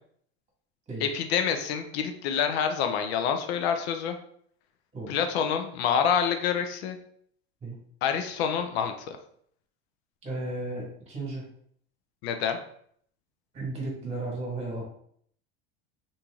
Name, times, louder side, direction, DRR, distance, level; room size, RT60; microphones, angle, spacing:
voice 1, 1.0-4.2 5.1-7.0 8.0-9.2 12.2-12.6, left 7 dB, 80° left, 6 dB, 0.6 m, -27 dB
voice 2, 10.2-11.4 13.5-14.8, right 2 dB, 20° right, -2 dB, 1.5 m, -34 dB
3.0 x 2.7 x 3.5 m, 0.64 s
supercardioid pair, 140°, 31 cm